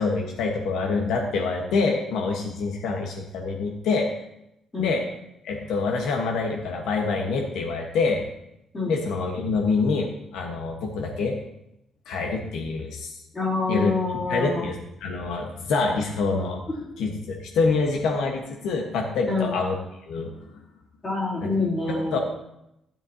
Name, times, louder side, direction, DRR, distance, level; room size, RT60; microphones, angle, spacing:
voice 1, 0.0-4.1 4.8-5.0 5.4-8.2 8.8-11.3 12.1-13.2 13.7-13.9 14.3-16.6 17.0-19.8 20.1-20.4 21.4-21.5 21.9-22.2, left 4 dB, 80° left, 1 dB, 1.3 m, -26 dB
voice 2, 13.3-14.7 19.3-19.6 21.0-22.2, left 3 dB, 20° left, -5 dB, 3.0 m, -26 dB
12.5 x 10.5 x 2.9 m, 0.82 s
cardioid pair, 175°, 0 cm